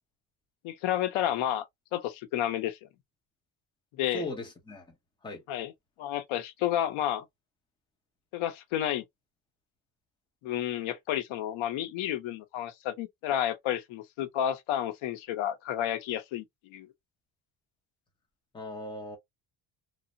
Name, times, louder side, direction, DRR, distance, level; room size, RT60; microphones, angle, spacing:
voice 1, 0.6-1.7 1.9-2.8 4.0-4.3 5.5-5.7 6.0-7.2 8.3-9.0 10.4-16.9, left 11 dB, 90° left, 0.7 m, -31 dB
voice 2, 4.1-4.9 5.2-5.4 18.5-19.2, left 1 dB, 10° left, 0.8 m, -38 dB
3.2 x 2.0 x 2.5 m
cardioid pair, 170°, 46 cm